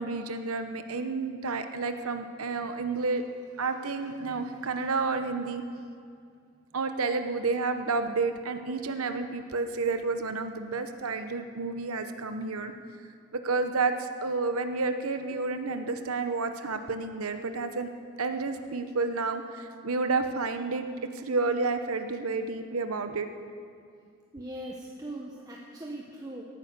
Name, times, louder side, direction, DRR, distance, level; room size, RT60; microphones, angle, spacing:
voice 1, 0.0-3.2 3.6-5.6 6.7-12.7 13.3-17.9 18.2-23.3, right 4 dB, 90° right, 8 dB, 0.9 m, -30 dB
voice 2, 24.3-26.4, right 1 dB, 15° right, -2 dB, 1.0 m, -40 dB
17.5 x 9.9 x 6.6 m, 2.3 s
head